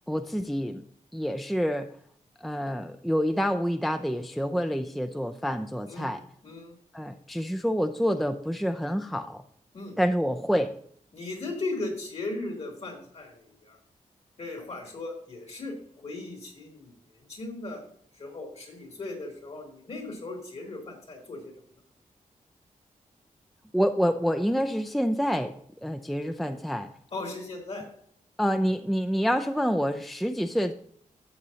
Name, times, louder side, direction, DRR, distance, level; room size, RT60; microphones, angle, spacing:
voice 1, 0.1-0.8 1.1-1.9 2.4-6.2 6.9-9.4 10.0-10.8 23.7-25.6 25.8-26.9 28.4-30.7, equal, ahead, 7 dB, 0.4 m, -27 dB
voice 2, 6.4-6.7 9.7-9.9 11.1-13.8 14.4-17.8 18.1-21.5 27.1-27.9 28.6-28.7, left 2 dB, 50° left, 1 dB, 3.2 m, -37 dB
12.5 x 8.1 x 2.8 m, 0.63 s
wide cardioid pair, 135°, 13 cm